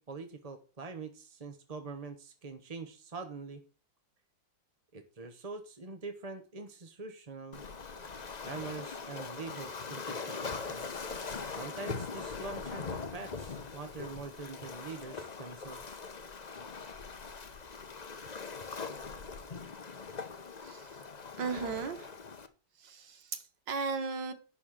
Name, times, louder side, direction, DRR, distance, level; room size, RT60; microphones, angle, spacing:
voice 1, 0.0-3.6 4.9-7.6 8.4-10.9 11.6-16.0, right 4 dB, 35° right, 0.6 m, -44 dB
Waves surf, 7.5-22.5, left 4 dB, 45° left, 0.5 m, -41 dB
voice 2, 20.6-21.0 21.4-22.1 22.8-24.3, right 4 dB, 65° right, 1.9 m, -36 dB
11.5 x 4.2 x 7.3 m
omnidirectional pair, 2.1 m